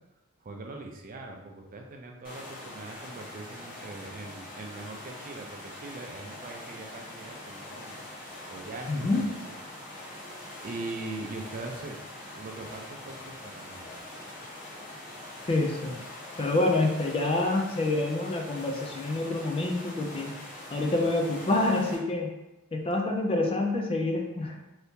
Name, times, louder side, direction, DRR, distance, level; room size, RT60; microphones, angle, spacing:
voice 1, 0.4-8.0 8.5-9.5 10.6-12.0 12.3-13.9, right 2 dB, 40° right, 2 dB, 0.4 m, -41 dB
sound 1, 2.2-22.0, left 1 dB, 40° left, 1.1 m, -43 dB
voice 2, 8.9-9.3 15.5-16.0 16.4-20.3 20.7-22.3 22.7-24.6, left 2 dB, 25° left, 2 dB, 0.4 m, -27 dB
2.8 x 2.7 x 3.4 m, 1.0 s
head